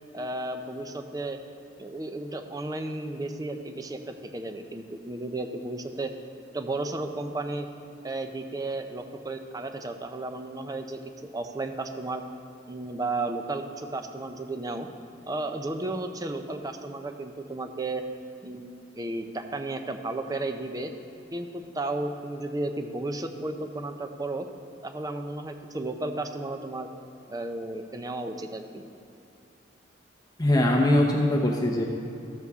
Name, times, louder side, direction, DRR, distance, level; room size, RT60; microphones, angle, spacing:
voice 1, 0.1-1.4 1.8-4.0 4.3-6.1 6.5-7.7 8.0-11.0 11.3-12.2 12.7-14.9 15.3-18.0 18.4-20.9 21.3-24.5 24.8-26.9 27.3-28.8, right 2 dB, 20° right, 6 dB, 0.5 m, -33 dB
voice 2, 30.4-31.8, left 1 dB, 20° left, 0 dB, 0.7 m, -22 dB
13.5 x 7.0 x 3.6 m, 2.8 s
head